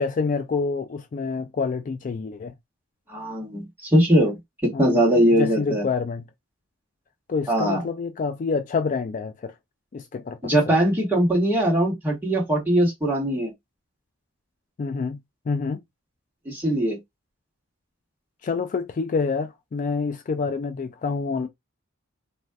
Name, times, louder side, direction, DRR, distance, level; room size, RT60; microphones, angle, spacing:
voice 1, 0.0-2.5 4.7-5.0 5.3-6.2 7.3-9.5 9.9-10.5 14.8-15.2 15.5-15.8 18.4-21.5, left 4 dB, 40° left, 0.3 m, -27 dB
voice 2, 3.1-5.8 7.5-7.8 10.4-13.5 16.4-17.0, right 1 dB, 10° right, 1.3 m, -21 dB
2.5 x 2.2 x 3.4 m
head